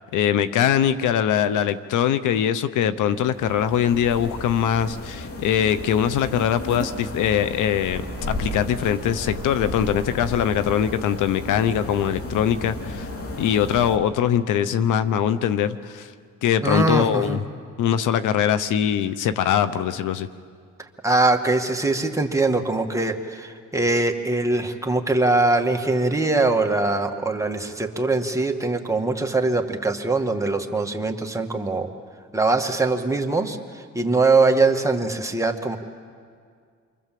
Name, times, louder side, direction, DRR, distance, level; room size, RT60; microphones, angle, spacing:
voice 1, 0.0-8.0 8.3-13.1 13.4-16.1 16.4-17.4 17.8-20.3, left 9 dB, 85° left, 13 dB, 1.0 m, -22 dB
sound 1, 3.1-14.0, left 1 dB, 50° left, 2.8 m, -33 dB
voice 2, 16.6-17.4 21.0-31.9 32.3-33.6 33.9-35.8, right 3 dB, 10° right, 3 dB, 2.1 m, -22 dB
28.5 x 24.0 x 7.7 m, 2.1 s
cardioid pair, 90°, 30 cm